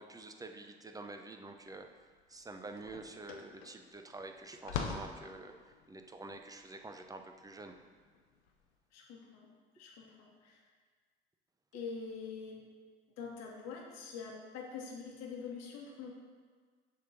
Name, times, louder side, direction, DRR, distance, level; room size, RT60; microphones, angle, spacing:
voice 1, 0.0-5.5 5.9-7.8, right 2 dB, 10° right, 5 dB, 0.6 m, -48 dB
sound 1, 1.8-1.9 2.2-8.6, left 6 dB, 85° left, 0.7 m, -44 dB
voice 2, 8.9-9.5 9.7-10.6 11.7-12.6 13.2-16.1, left 5 dB, 60° left, -1 dB, 1.4 m, -45 dB
6.6 x 3.5 x 5.8 m, 1.5 s
hypercardioid pair, 65°, 29 cm